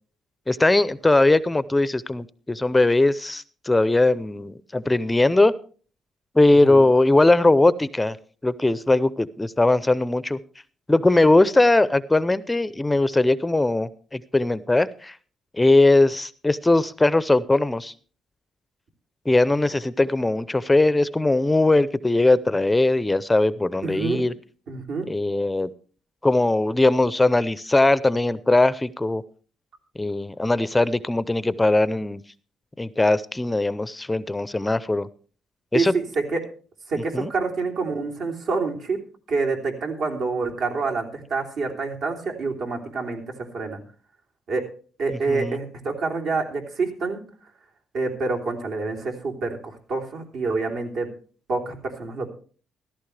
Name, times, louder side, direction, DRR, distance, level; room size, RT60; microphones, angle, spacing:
voice 1, 0.5-5.5 6.4-8.2 8.4-10.4 10.9-15.2 15.6-17.9 19.3-24.3 25.1-25.7 26.2-29.2 30.0-32.2 32.8-35.1 35.7-35.9 37.1-37.3 45.3-45.6, left 2 dB, 15° left, 16 dB, 0.5 m, -20 dB
voice 2, 23.8-24.2 24.7-25.1 35.7-36.4 36.9-39.0 39.3-43.2 43.5-43.8 44.5-44.6 45.0-47.2 47.9-51.1 51.5-52.3, right 4 dB, 70° right, 2 dB, 3.3 m, -27 dB
15.0 x 13.5 x 3.3 m, 0.42 s
cardioid pair, 90°, 0 cm